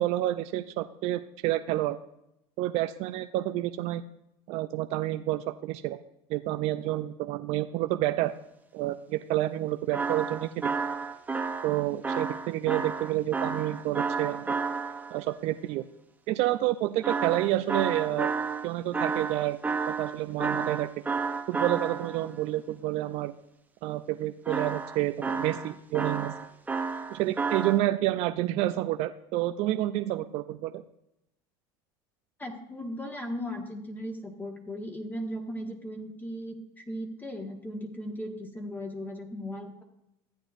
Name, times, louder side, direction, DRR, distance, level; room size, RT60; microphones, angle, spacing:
voice 1, 0.0-2.0 2.6-4.0 4.5-6.0 6.3-8.3 8.7-10.7 11.6-14.6 15.1-15.9 16.3-18.3 18.6-19.6 19.9-20.9 21.5-23.3 23.8-26.4 27.1-30.8, right 15 dB, 55° right, 8 dB, 0.5 m, -29 dB
sound 1, 9.9-15.2 17.0-22.3 24.5-27.8, right 4 dB, 10° right, 0.7 m, -31 dB
voice 2, 32.4-39.8, equal, 15° left, 2 dB, 1.5 m, -37 dB
14.0 x 8.8 x 2.5 m, 0.83 s
supercardioid pair, 110°, 13 cm